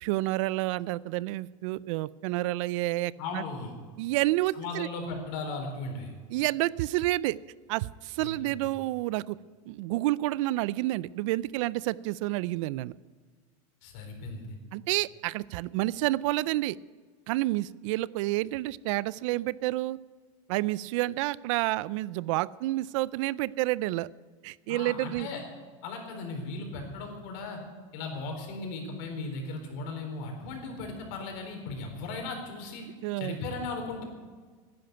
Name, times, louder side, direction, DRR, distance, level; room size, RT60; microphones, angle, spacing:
voice 1, 0.0-3.4 4.0-4.9 6.3-7.4 7.7-9.4 9.7-12.9 14.7-16.8 17.3-20.0 20.5-24.1 24.4-25.3 33.0-33.4, right 18 dB, 65° right, 21 dB, 0.4 m, -29 dB
voice 2, 3.2-3.7 4.5-6.1 8.2-8.6 13.8-14.6 24.7-25.4 25.8-27.6 27.9-32.8 33.2-34.0, left 3 dB, 60° left, 4 dB, 4.1 m, -37 dB
11.5 x 10.5 x 9.2 m, 1.5 s
supercardioid pair, 130°, 17 cm